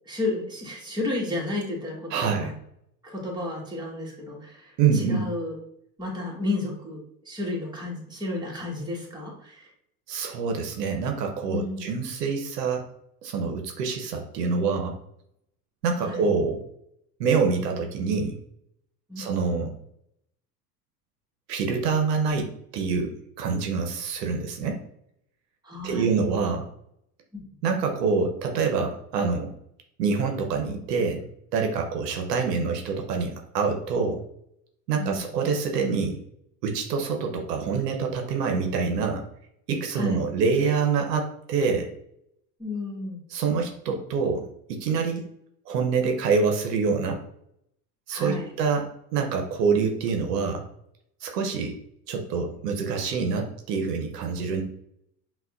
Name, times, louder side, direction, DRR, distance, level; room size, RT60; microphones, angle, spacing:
voice 1, 0.0-2.5 3.0-5.5 6.0-9.7 11.5-11.9 16.0-16.2 19.1-19.2 19.5-19.7 25.6-26.2 35.0-35.3 39.9-40.2 42.6-43.2 48.1-48.5, left 2 dB, 10° right, -3 dB, 1.4 m, -32 dB
voice 2, 2.1-2.5 4.8-5.3 10.1-12.8 13.2-15.0 15.8-16.6 17.2-18.4 19.2-19.7 21.5-23.1 23.4-24.8 25.8-26.7 27.6-29.5 30.0-34.2 34.9-36.2 36.6-39.2 39.7-41.9 43.3-44.4 44.7-45.2 45.7-47.2 48.1-50.6 51.2-51.8 52.1-54.6, right 5 dB, 80° right, 3 dB, 0.8 m, -26 dB
5.5 x 2.4 x 2.4 m, 0.72 s
hypercardioid pair, 75°, 48 cm